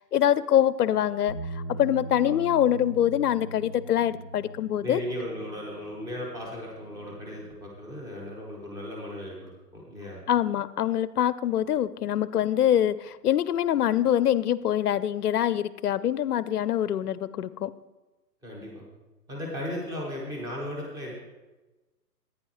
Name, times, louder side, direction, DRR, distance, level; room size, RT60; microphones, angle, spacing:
voice 1, 0.1-5.0 10.3-17.7, left 11 dB, 65° left, 17 dB, 0.6 m, -24 dB
Bass guitar, 1.3-7.5, right 2 dB, 55° right, 2.3 m, -41 dB
voice 2, 4.8-10.2 18.4-18.8 19.3-21.1, left 1 dB, 5° right, -2 dB, 1.3 m, -36 dB
15.0 x 9.7 x 3.1 m, 1.1 s
figure-of-eight pair, 130°, 49 cm